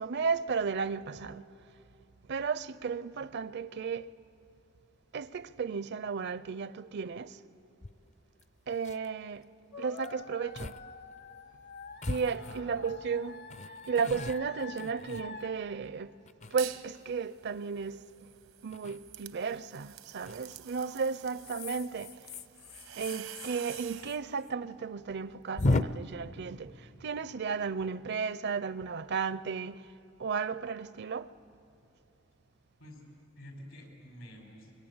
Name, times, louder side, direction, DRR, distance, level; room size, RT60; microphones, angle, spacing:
voice 1, 0.0-1.5 2.3-4.1 5.1-7.4 8.7-9.5 9.8-10.8 12.1-13.4 13.9-16.2 16.5-18.0 18.6-22.2 23.0-29.9 30.2-31.3, right 5 dB, 55° right, 0.5 m, -34 dB
sound 1, 7.8-7.9 8.4-8.5 8.7-9.1 10.0-10.1 10.6-10.8 11.1-11.2 12.0-13.0 13.5-15.7 16.3-17.0 18.7-19.0 20.3-20.6 21.4-24.2 24.4-24.5 24.8-24.9 25.6-25.8, left 2 dB, 35° left, 0.5 m, -35 dB
sound 2, 9.7-15.5, left 4 dB, 60° left, 1.2 m, -47 dB
voice 2, 12.3-12.8 32.8-33.0 33.4-34.7, equal, 80° left, 5.6 m, -49 dB
sound 3, 16.4-16.9 17.3-24.1, right 12 dB, 85° right, 1.0 m, -48 dB
24.5 x 22.5 x 8.8 m
head